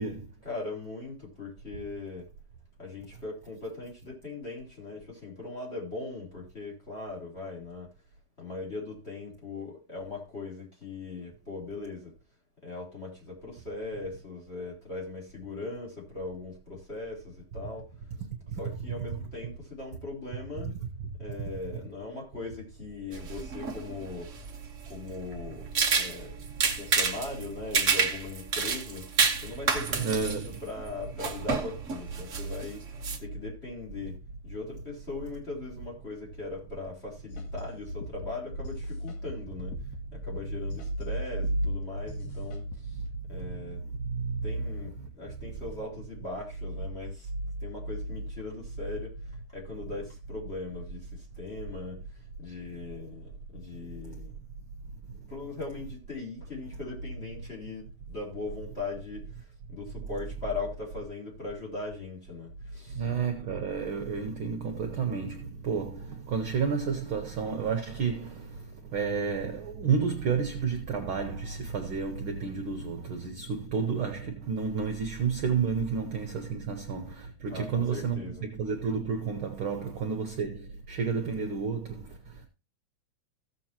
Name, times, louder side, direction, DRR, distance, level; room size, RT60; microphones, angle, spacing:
voice 1, 0.4-2.3 2.8-7.9 8.4-12.1 12.6-17.9 18.5-20.8 21.2-24.3 24.9-26.4 26.8-29.1 29.4-32.8 33.2-39.8 40.1-43.0 43.3-43.8 44.4-47.3 47.6-54.3 55.3-63.0 77.5-78.5, left 3 dB, 20° left, 3.4 m, -40 dB
sound 1, 23.1-33.2, right 5 dB, 90° right, 0.6 m, -30 dB
voice 2, 30.0-30.5 42.9-43.0 43.4-43.7 44.0-44.5 45.0-45.1 62.9-82.5, right 6 dB, 60° right, 1.5 m, -31 dB
sound 2, 37.3-43.2, equal, 85° left, 2.8 m, -39 dB
15.5 x 7.4 x 2.9 m
omnidirectional pair, 3.3 m